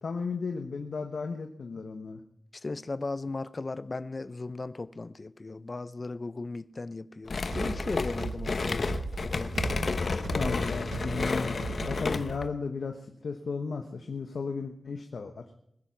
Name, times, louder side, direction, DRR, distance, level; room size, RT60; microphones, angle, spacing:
voice 1, 0.0-2.2 10.3-15.4, left 4 dB, 80° left, 1.2 m, -35 dB
voice 2, 2.5-9.8, left 3 dB, 35° left, 0.6 m, -37 dB
sound 1, 7.3-12.5, left 4 dB, 60° left, 1.0 m, -31 dB
sound 2, 7.5-12.5, right 5 dB, 90° right, 1.1 m, -39 dB
21.0 x 9.9 x 5.9 m
wide cardioid pair, 120°, 0 cm